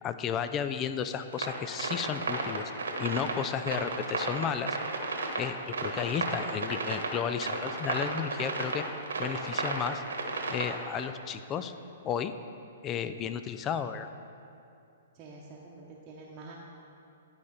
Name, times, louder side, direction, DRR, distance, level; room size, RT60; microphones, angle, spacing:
voice 1, 0.0-2.7 3.0-4.8 5.4-8.8 9.2-10.0 10.5-11.7 12.0-12.3 12.8-14.1, left 8 dB, 25° left, 10 dB, 0.4 m, -33 dB
sound 1, 1.3-11.1, right 3 dB, 80° right, 1.3 m, -33 dB
voice 2, 15.2-16.5, right 3 dB, 30° right, -5 dB, 1.0 m, -47 dB
10.5 x 5.1 x 4.2 m, 2.6 s
hypercardioid pair, 130°, 0 cm